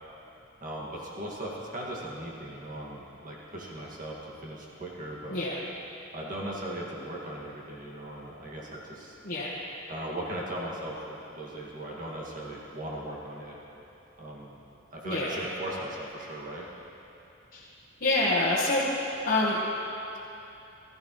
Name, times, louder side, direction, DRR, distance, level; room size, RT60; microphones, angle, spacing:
voice 1, 0.6-5.4 6.1-9.2 9.9-13.6 14.2-14.6 14.9-16.7, right 1 dB, 40° right, -4 dB, 2.1 m, -38 dB
voice 2, 9.2-9.6 15.0-15.3 17.5-17.6 18.0-18.8 19.2-19.6, left 2 dB, 45° left, -7 dB, 1.3 m, -26 dB
16.0 x 14.0 x 3.2 m, 2.9 s
head